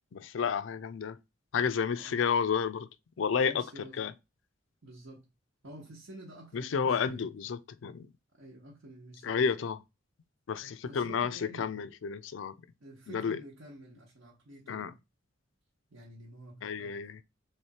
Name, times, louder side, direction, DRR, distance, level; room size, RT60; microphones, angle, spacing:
voice 1, 0.1-1.2 1.5-2.9 3.2-3.6 4.0-4.1 6.5-8.1 9.2-9.8 10.5-12.5 13.1-13.4 14.7-14.9 16.6-17.2, left 6 dB, 70° left, 0.4 m, -31 dB
voice 2, 1.9-2.2 3.4-4.0 4.8-5.2 5.6-7.2 8.4-9.7 10.8-11.7 12.8-14.9 15.9-17.0, right 1 dB, 85° right, 1.2 m, -50 dB
3.5 x 3.2 x 4.2 m
head